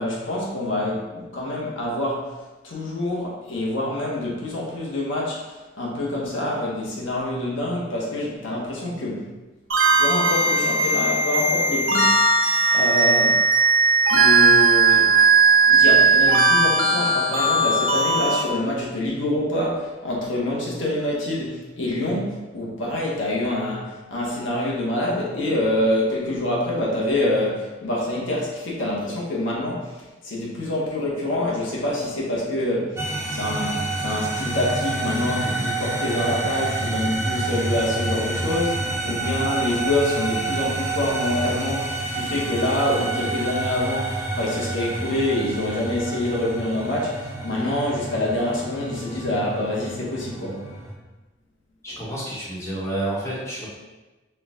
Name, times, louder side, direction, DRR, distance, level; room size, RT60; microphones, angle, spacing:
voice 1, 0.0-2.3 2.6-9.3 10.0-13.5 14.1-15.1 15.6-33.0 33.3-50.7 51.9-52.0, left 1 dB, 85° left, -4 dB, 1.0 m, -26 dB
sound 1, 9.7-18.4, right 3 dB, 80° right, 0.6 m, -17 dB
sound 2, 33.0-50.9, right 2 dB, 15° right, 0.5 m, -28 dB
voice 2, 51.8-53.7, right 1 dB, 15° left, -7 dB, 1.1 m, -29 dB
4.5 x 2.2 x 3.6 m, 1.2 s
head